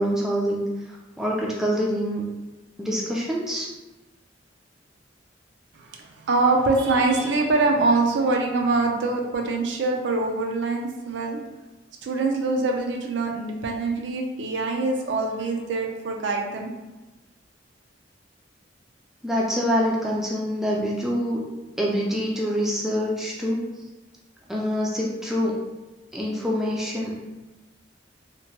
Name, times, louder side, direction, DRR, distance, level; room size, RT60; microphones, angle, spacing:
voice 1, 0.0-2.2 2.8-3.7 19.2-21.4 21.8-23.6 24.5-25.5 26.1-27.1, equal, ahead, -4 dB, 0.3 m, -25 dB
voice 2, 5.7-11.4 12.0-16.7, right 3 dB, 70° right, 2 dB, 0.4 m, -24 dB
2.9 x 2.1 x 2.8 m, 1.1 s
head